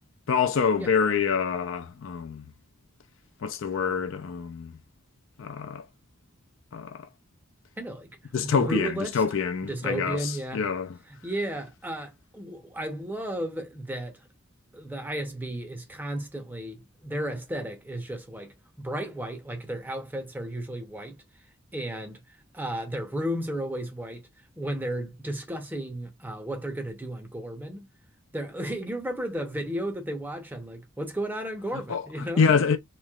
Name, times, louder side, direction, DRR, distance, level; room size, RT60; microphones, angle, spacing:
voice 1, 0.3-2.4 3.4-4.7 5.4-5.9 6.7-7.1 8.3-11.0 31.9-32.8, left 6 dB, 65° left, 0.4 m, -26 dB
voice 2, 7.8-8.1 8.4-9.2 9.6-10.7 11.1-14.2 14.7-21.2 21.7-22.2 22.5-24.3 24.6-27.8 28.3-32.7, right 1 dB, 10° right, 0.7 m, -33 dB
3.1 x 2.8 x 2.3 m
head